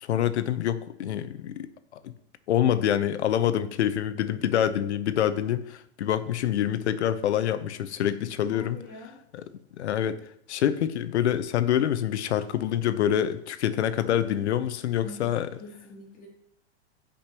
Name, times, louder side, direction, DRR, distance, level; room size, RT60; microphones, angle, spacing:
voice 1, 0.0-2.1 2.5-8.8 9.8-15.5, left 10 dB, 85° left, 13 dB, 0.8 m, -26 dB
voice 2, 8.5-9.2 15.0-15.3 15.6-16.3, left 3 dB, 25° left, -3 dB, 2.9 m, -44 dB
15.5 x 5.2 x 3.0 m, 0.73 s
hypercardioid pair, 135°, 33 cm